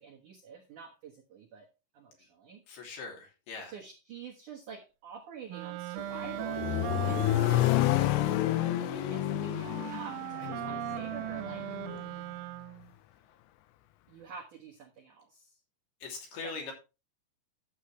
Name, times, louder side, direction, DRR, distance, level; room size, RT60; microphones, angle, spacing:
voice 1, 0.0-1.7 1.9-2.6 3.7-11.7 14.1-15.5 16.4-16.5, right 6 dB, 70° right, 0 dB, 1.9 m, -47 dB
voice 2, 2.7-3.7 16.0-16.7, left 4 dB, 55° left, 0 dB, 4.5 m, -41 dB
Wind instrument woodwind instrument, 5.5-12.9, right 14 dB, 90° right, 3.4 m, -39 dB
Accelerating revving vroom, 6.0-12.0, left 16 dB, 85° left, 2.6 m, -29 dB
12.0 x 8.5 x 3.2 m, 0.29 s
omnidirectional pair, 5.9 m